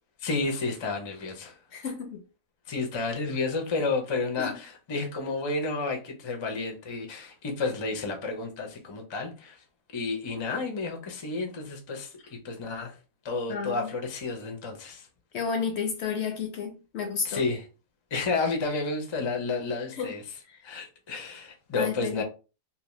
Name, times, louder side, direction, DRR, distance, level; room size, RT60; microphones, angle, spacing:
voice 1, 0.2-1.6 2.7-9.6 9.9-12.9 13.2-15.1 17.2-17.7 18.1-20.4 20.6-22.2, left 3 dB, 40° left, 0.4 m, -31 dB
voice 2, 1.7-2.2 4.4-4.5 13.5-13.9 15.3-17.4 20.0-20.1 21.7-22.2, left 6 dB, 65° left, 0.7 m, -31 dB
2.7 x 2.1 x 3.0 m
omnidirectional pair, 1.4 m